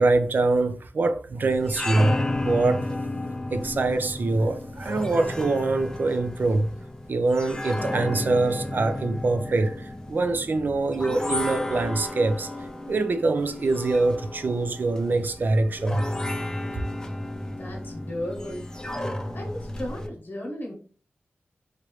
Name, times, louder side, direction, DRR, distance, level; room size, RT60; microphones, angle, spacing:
voice 1, 0.0-2.2 2.5-3.0 3.5-6.7 7.1-12.5 12.9-16.0, right 3 dB, 50° right, 0.4 m, -24 dB
sound 1, 1.5-20.1, left 1 dB, 15° left, 0.4 m, -33 dB
voice 2, 17.5-18.7 19.3-20.7, left 1 dB, 50° left, 1.0 m, -35 dB
3.0 x 2.5 x 3.0 m
wide cardioid pair, 95°, 4 cm